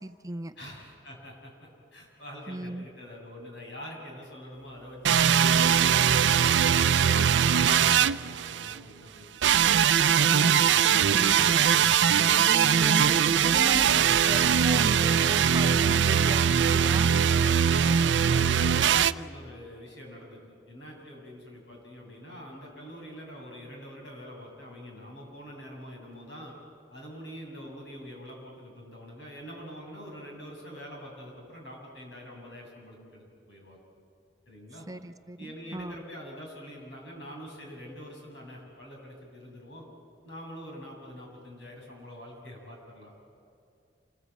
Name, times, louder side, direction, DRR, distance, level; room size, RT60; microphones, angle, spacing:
voice 1, 0.0-0.5 2.5-2.9 10.3-11.6 12.3-17.1 34.9-36.0, right 2 dB, 20° right, 8 dB, 0.6 m, -37 dB
voice 2, 0.6-5.3 5.7-10.5 12.0-13.1 17.7-20.4 20.7-26.5 26.9-33.9 34.5-34.8 35.4-39.9 40.2-43.3, equal, 80° left, 0 dB, 6.8 m, -45 dB
sound 1, 5.0-8.8 9.4-19.1, right 8 dB, 85° right, 0.5 m, -21 dB
27.0 x 19.5 x 8.4 m, 2.5 s
head